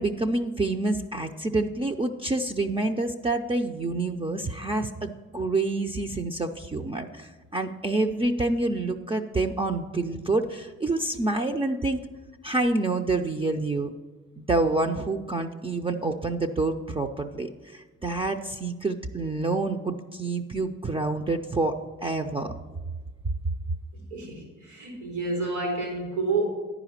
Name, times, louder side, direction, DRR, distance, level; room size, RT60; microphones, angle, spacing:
voice 1, 0.0-12.0 12.4-13.9 14.4-22.5, right 2 dB, 20° right, 4 dB, 0.4 m, -27 dB
voice 2, 23.9-26.5, right 3 dB, 85° right, -1 dB, 3.7 m, -29 dB
10.5 x 5.0 x 7.1 m, 1.3 s
cardioid pair, 90°, 30 cm